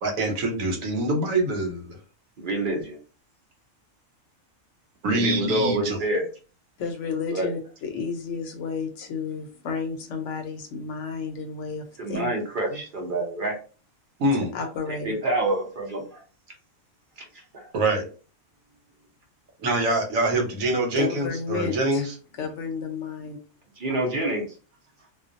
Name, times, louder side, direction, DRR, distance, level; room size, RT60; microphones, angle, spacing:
voice 1, 0.0-2.0 5.0-6.0 14.2-14.5 17.7-18.0 19.6-22.1, right 1 dB, 85° right, 1 dB, 1.2 m, -25 dB
voice 2, 2.4-3.0 5.1-6.2 7.3-7.5 12.0-13.6 14.9-16.2 17.5-17.7 23.8-24.4, right 1 dB, 45° right, 0 dB, 0.8 m, -27 dB
voice 3, 6.8-12.3 12.7-12.8 14.5-15.1 21.0-22.0 22.4-23.4, left 5 dB, 70° left, 5 dB, 0.9 m, -32 dB
2.5 x 2.2 x 2.5 m, 0.36 s
omnidirectional pair, 1.4 m